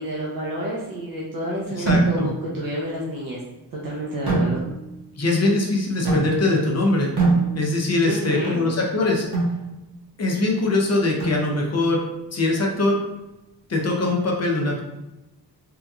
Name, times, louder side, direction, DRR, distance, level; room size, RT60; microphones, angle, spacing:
voice 1, 0.0-3.4 3.8-4.6 8.1-8.6, equal, 55° right, -5 dB, 0.6 m, -29 dB
voice 2, 1.8-2.3 5.2-7.1 7.5-9.3 10.2-12.0 12.3-13.0 13.7-14.8, left 2 dB, 40° left, 0 dB, 0.6 m, -22 dB
sound 1, 1.9-2.5 4.3-5.0 6.0-6.6 7.2-8.0 9.3-9.7 11.2-11.8, right 3 dB, 70° right, 1.0 m, -23 dB
3.5 x 2.8 x 2.3 m, 0.97 s
wide cardioid pair, 160°, 42 cm